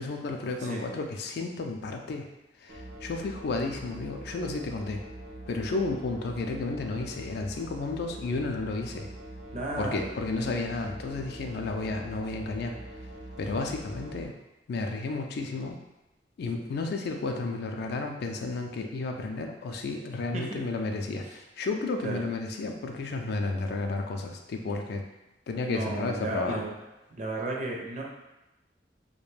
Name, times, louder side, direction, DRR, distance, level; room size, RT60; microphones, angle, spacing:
voice 1, 0.0-2.3 2.6-5.0 5.5-9.1 9.8-12.8 13.4-14.3 14.7-15.8 16.4-25.0 25.5-26.6, left 3 dB, 60° left, 4 dB, 0.3 m, -32 dB
sound 1, 2.7-14.3, right 1 dB, 85° right, 0.6 m, -43 dB
voice 2, 9.5-10.1 20.3-20.6 22.0-22.2 25.7-26.7 27.1-28.0, right 2 dB, 45° right, -1 dB, 0.4 m, -33 dB
2.4 x 2.1 x 3.1 m, 0.98 s
head